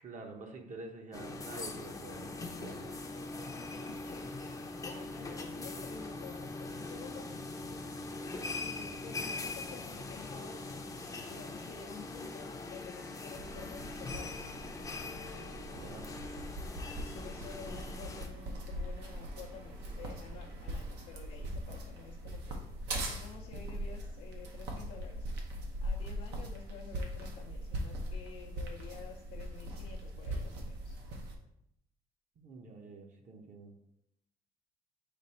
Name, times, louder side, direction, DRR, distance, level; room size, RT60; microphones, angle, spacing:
voice 1, 0.0-2.9 15.6-16.1 32.4-33.7, right 3 dB, 45° right, 3 dB, 0.8 m, -48 dB
sound 1, 1.1-18.3, left 3 dB, 20° left, 0.5 m, -42 dB
voice 2, 3.7-4.5 4.8-7.3 8.6-10.6 11.3-14.5 17.0-22.6 23.2-25.3 25.8-31.0, left 6 dB, 85° left, -3 dB, 0.6 m, -50 dB
sound 2, 13.4-31.3, right 1 dB, 85° right, 0.9 m, -41 dB
5.1 x 2.5 x 4.2 m, 0.78 s
cardioid pair, 110°, 17 cm